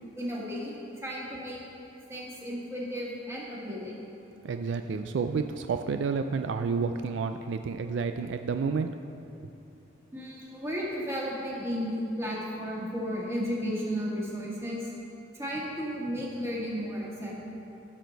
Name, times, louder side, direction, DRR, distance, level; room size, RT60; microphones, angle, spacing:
voice 1, 0.2-1.6 2.1-3.9 10.1-14.9 15.3-17.3, equal, 15° right, -4 dB, 1.6 m, -34 dB
voice 2, 4.4-8.9, right 5 dB, 70° right, 7 dB, 0.3 m, -30 dB
14.0 x 6.4 x 4.0 m, 2.8 s
head